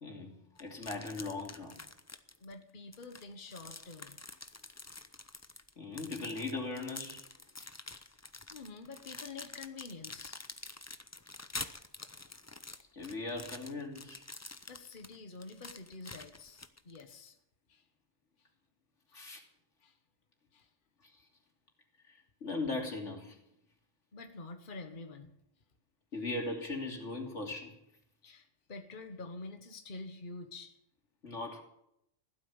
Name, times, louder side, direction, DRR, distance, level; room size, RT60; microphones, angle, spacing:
voice 1, 0.0-1.8 5.8-7.2 7.6-7.7 12.9-14.2 19.1-19.4 21.0-21.1 22.0-23.4 26.1-27.7 31.2-31.6, left 2 dB, 90° left, 2 dB, 3.4 m, -39 dB
sound 1, 0.6-2.5 2.9-17.1, left 3 dB, 20° left, 0.6 m, -47 dB
voice 2, 2.4-4.2 8.5-10.4 14.7-17.3 17.7-17.8 18.4-18.5 19.1-19.2 19.8-20.0 20.5-20.7 24.1-25.3 28.2-30.8, left 3 dB, 45° left, 6 dB, 1.5 m, -47 dB
16.0 x 12.5 x 7.2 m, 0.78 s
omnidirectional pair, 1.2 m